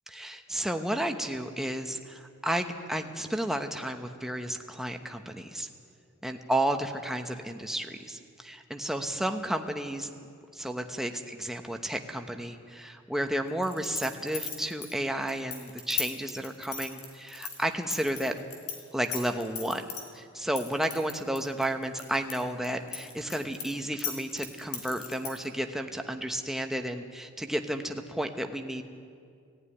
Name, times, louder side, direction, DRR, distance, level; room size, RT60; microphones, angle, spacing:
voice 1, 0.1-5.7 6.2-10.1 10.5-18.4 18.9-19.8 20.1-28.8, right 1 dB, ahead, 5 dB, 1.0 m, -32 dB
sound 1, 13.6-18.8 19.0-20.0 20.6-22.3 22.6-25.4, left 7 dB, 85° left, 4.7 m, -36 dB
18.0 x 14.5 x 9.9 m, 2.3 s
head